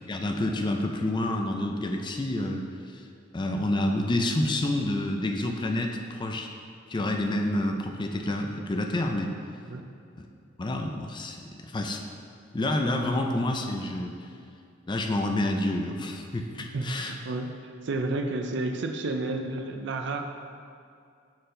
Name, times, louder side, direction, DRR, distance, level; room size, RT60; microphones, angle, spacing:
voice 1, 0.1-2.7 2.9-3.0 3.3-6.5 6.9-9.3 10.2-10.3 10.6-12.1 12.5-14.1 14.9-17.1, left 1 dB, 25° left, 3 dB, 0.4 m, -28 dB
voice 2, 16.6-20.2, right 2 dB, 65° right, 5 dB, 0.5 m, -31 dB
6.9 x 4.6 x 3.8 m, 2.4 s
head